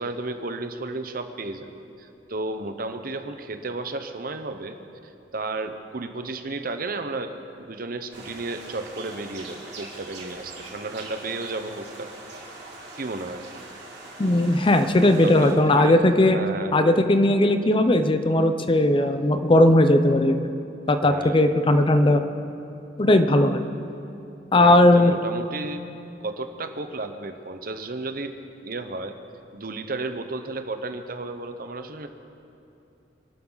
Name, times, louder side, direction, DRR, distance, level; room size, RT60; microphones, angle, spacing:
voice 1, 0.0-4.8 5.0-12.1 13.0-13.4 15.2-16.8 17.6-17.8 21.0-21.5 24.6-25.9 26.2-28.4 28.6-29.2 29.5-32.1, right 2 dB, 55° right, 8 dB, 0.9 m, -33 dB
sound 1, 8.1-15.5, right 2 dB, 70° right, 3.9 m, -42 dB
voice 2, 14.2-16.4 16.7-20.4 20.9-22.2 23.0-23.6 24.5-25.1, left 1 dB, 30° left, 8 dB, 0.7 m, -18 dB
25.0 x 12.0 x 4.0 m, 2.8 s
head